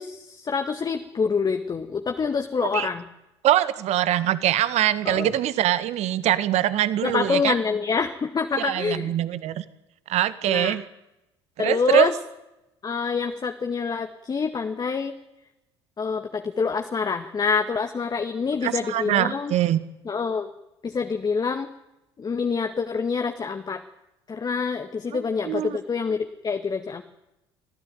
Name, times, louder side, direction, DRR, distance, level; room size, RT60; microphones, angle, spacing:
voice 1, 0.0-3.0 5.1-5.3 7.0-9.1 10.5-10.8 11.6-12.1 12.8-15.2 16.0-19.5 20.1-20.5 20.8-21.7 22.2-23.8 24.3-27.0, left 5 dB, 30° left, 6 dB, 2.0 m, -26 dB
voice 2, 3.4-7.6 8.6-9.6 10.1-10.8 11.6-12.1 18.6-19.8 25.1-25.8, right 12 dB, 55° right, 14 dB, 1.8 m, -23 dB
26.0 x 15.5 x 9.2 m, 0.92 s
hypercardioid pair, 65°, 13 cm